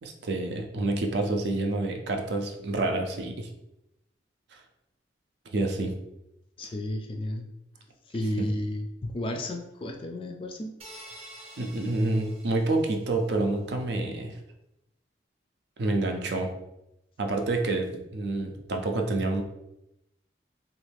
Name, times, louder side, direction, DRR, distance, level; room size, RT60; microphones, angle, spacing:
voice 1, 0.0-3.5 4.5-4.6 5.5-5.9 8.4-8.5 11.6-14.4 15.8-16.5 17.2-19.4, right 2 dB, 70° right, 3 dB, 0.5 m, -28 dB
voice 2, 6.6-7.5 8.1-10.8, left 1 dB, 30° left, 3 dB, 0.3 m, -32 dB
sound 1, 10.8-13.3, right 1 dB, 35° right, 0.7 m, -48 dB
3.0 x 2.5 x 3.3 m, 0.89 s
head